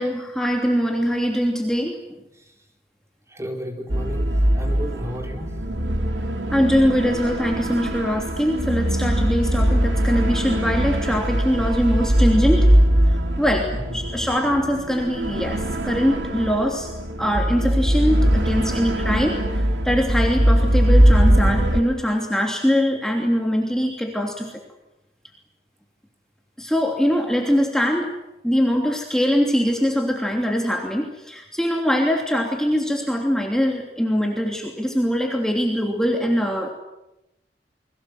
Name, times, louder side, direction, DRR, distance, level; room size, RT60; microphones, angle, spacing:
voice 1, 0.0-2.0 6.5-12.7 13.1-16.9 17.2-24.6 26.6-28.1 28.4-36.7, equal, 5° left, 1 dB, 3.0 m, -22 dB
voice 2, 3.3-5.6 13.7-14.0, equal, 15° right, 3 dB, 4.1 m, -33 dB
sound 1, 3.9-21.8, equal, 85° right, 3.0 m, -21 dB
29.5 x 23.0 x 7.9 m, 0.90 s
head